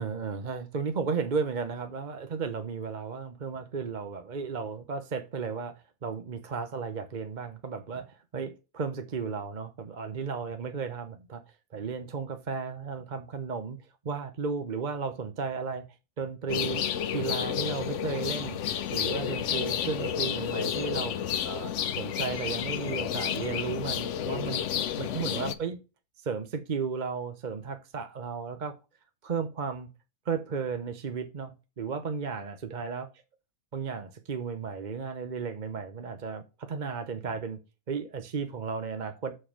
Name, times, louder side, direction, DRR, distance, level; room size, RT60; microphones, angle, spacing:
voice 1, 0.0-5.7 6.0-11.4 11.7-13.8 14.0-15.8 16.2-16.8 17.1-18.6 18.9-25.8 26.2-28.8 29.2-29.9 30.3-33.1 33.7-37.6 37.9-39.4, right 5 dB, 40° right, 0.8 m, -34 dB
sound 1, 16.5-25.5, left 9 dB, 60° left, 0.9 m, -31 dB
7.1 x 4.4 x 5.8 m
omnidirectional pair, 1.6 m